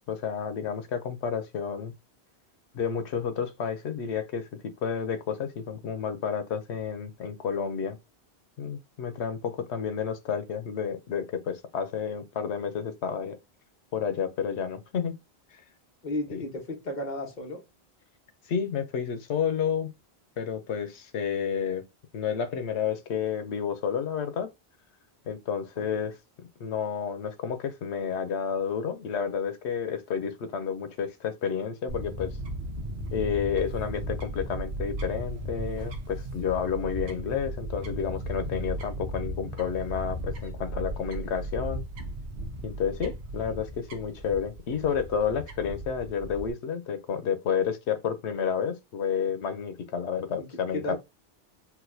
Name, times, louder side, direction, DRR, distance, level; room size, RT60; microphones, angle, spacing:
voice 1, 0.0-1.9 2.7-8.0 8.6-13.4 13.9-15.1 16.3-16.4 18.5-19.9 20.4-21.8 22.1-24.5 25.3-26.2 26.6-32.4 33.1-41.8 42.6-51.0, left 7 dB, 85° left, 0.9 m, -30 dB
voice 2, 16.0-17.6 25.8-25.9 40.6-41.3 50.4-50.5 50.7-51.0, left 1 dB, 45° left, 1.1 m, -35 dB
Fowl / Bird, 31.9-46.5, right 1 dB, 75° right, 1.0 m, -36 dB
4.0 x 2.3 x 2.6 m
omnidirectional pair, 1.1 m